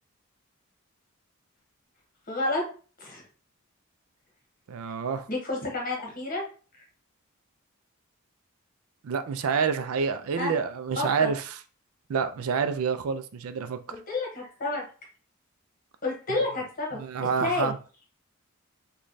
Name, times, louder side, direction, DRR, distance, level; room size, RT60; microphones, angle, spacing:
voice 1, 2.3-2.6 3.0-3.2 5.3-6.4 6.7-6.8 10.4-10.5 11.0-11.3 13.9-14.8 16.0-17.7, left 2 dB, 40° left, 1.3 m, -30 dB
voice 2, 4.7-5.3 9.0-11.6 12.1-13.8 16.3-16.4 16.9-17.8, right 6 dB, 75° right, 0.4 m, -28 dB
3.1 x 2.3 x 3.9 m
head